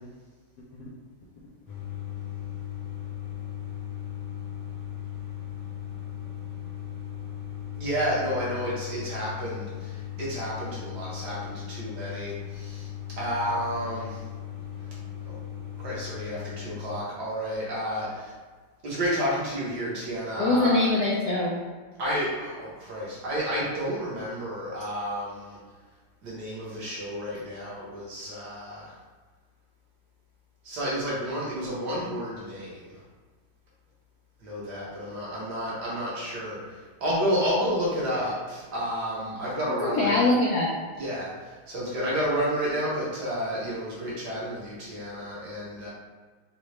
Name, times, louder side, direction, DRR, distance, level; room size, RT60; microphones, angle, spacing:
sound 1, 1.7-17.0, left 11 dB, 60° left, 1.1 m, -37 dB
voice 1, 7.8-12.9 13.2-14.2 15.3-15.4 15.8-18.3 18.8-20.8 22.0-25.6 26.2-28.9 30.6-33.0 34.4-40.2 41.0-45.9, equal, 55° right, -6 dB, 1.4 m, -31 dB
voice 2, 20.4-21.5 39.8-40.7, left 2 dB, 75° left, -4 dB, 0.9 m, -23 dB
4.7 x 2.2 x 3.1 m, 1.4 s
omnidirectional pair, 2.4 m